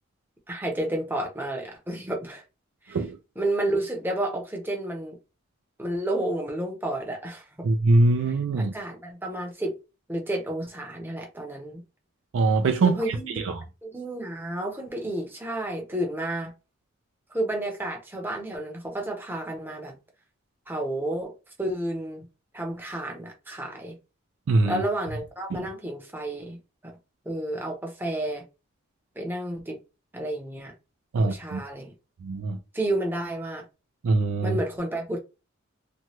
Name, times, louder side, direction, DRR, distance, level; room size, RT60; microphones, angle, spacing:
voice 1, 0.5-2.4 2.8-3.0 3.4-5.2 5.8-7.4 8.6-9.7 10.1-11.8 12.8-13.4 13.8-16.5 17.3-19.9 20.7-21.3 21.6-22.3 22.5-24.0 24.7-26.6 27.3-28.4 29.2-29.8 30.1-30.7 31.2-31.9 32.7-33.6 34.4-35.2, right 1 dB, 10° right, 0.7 m, -31 dB
voice 2, 7.6-8.7 12.3-13.5 24.5-24.8 25.6-25.7 31.1-31.6 32.2-32.6 34.0-34.6, right 2 dB, 70° right, 0.4 m, -23 dB
3.0 x 2.2 x 2.9 m
head